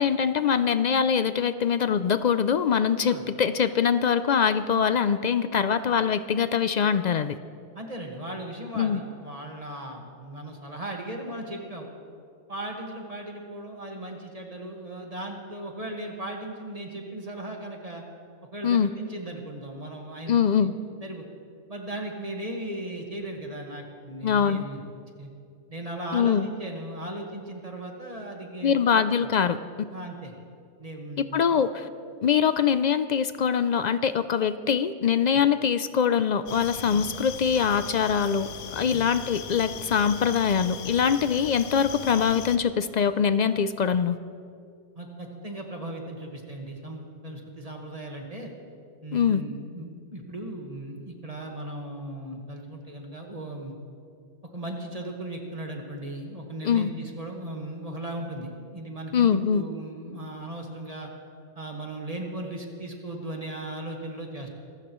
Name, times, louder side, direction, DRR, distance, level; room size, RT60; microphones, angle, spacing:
voice 1, 0.0-7.3 8.7-9.0 18.6-18.9 20.3-20.7 24.2-24.6 26.1-26.5 28.6-29.6 31.3-31.8 32.2-44.2 49.1-49.4 56.6-56.9 59.1-59.6, left 7 dB, 65° left, 12 dB, 0.4 m, -23 dB
voice 2, 7.7-11.9 12.5-18.0 18.5-20.7 21.0-21.2 21.7-24.8 25.2-25.3 25.7-29.0 29.9-30.3 30.8-31.6 36.9-37.0 38.9-39.0 44.9-48.5 49.0-53.7 54.5-61.1 61.5-64.5, right 1 dB, 30° right, 1 dB, 1.6 m, -37 dB
sound 1, 36.5-42.6, left 8 dB, 85° left, 1.1 m, -39 dB
26.0 x 15.0 x 3.1 m, 2.3 s
omnidirectional pair, 1.2 m